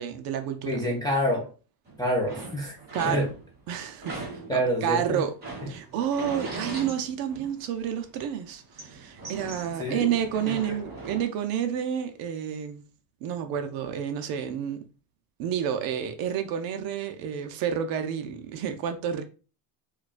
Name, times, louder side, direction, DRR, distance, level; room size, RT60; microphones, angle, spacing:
voice 1, 0.0-0.9 2.9-3.3 3.7-4.2 4.5-5.3 5.7-12.9 13.2-14.9 15.4-19.2, right 8 dB, 50° right, 0.6 m, -30 dB
voice 2, 0.7-1.5 2.0-2.8 3.1-3.3 4.2-5.2 9.8-10.1 10.5-10.7, equal, 10° left, 0.4 m, -27 dB
sound 1, 1.9-3.6 4.0-7.8 8.1-11.2, right 3 dB, 20° right, 1.4 m, -40 dB
4.6 x 2.3 x 2.4 m
cardioid pair, 145°, 46 cm